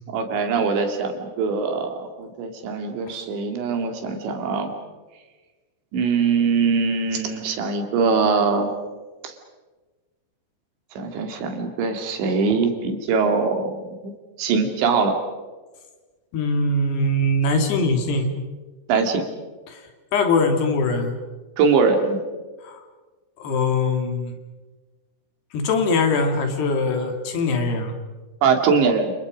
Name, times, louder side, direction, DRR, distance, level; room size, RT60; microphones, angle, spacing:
voice 1, 0.1-4.7 5.9-8.7 9.2-9.3 11.0-13.7 14.0-14.1 14.4-15.1 18.9-19.2 21.6-22.2 28.4-29.1, right 5 dB, 85° right, 5 dB, 4.8 m, -22 dB
voice 2, 16.3-18.3 19.7-19.8 20.1-21.2 22.6-22.8 23.4-24.4 25.5-28.0, left 2 dB, 70° left, 5 dB, 4.5 m, -22 dB
29.0 x 29.0 x 5.2 m, 1.3 s
omnidirectional pair, 5.0 m